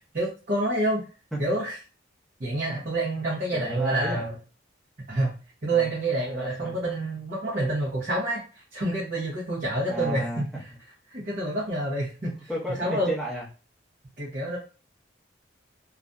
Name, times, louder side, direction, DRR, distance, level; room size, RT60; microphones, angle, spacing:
voice 1, 0.1-1.0 1.4-1.8 2.4-4.3 5.1-5.3 5.6-8.4 8.7-10.5 11.1-12.5 12.8-13.1 14.2-14.6, right 2 dB, 50° right, -6 dB, 0.8 m, -27 dB
voice 2, 3.5-4.3 5.7-5.9 6.3-6.7 9.9-10.4 10.7-10.8 12.2-13.4, equal, ahead, -6 dB, 0.8 m, -33 dB
2.5 x 2.4 x 2.2 m, 0.34 s
head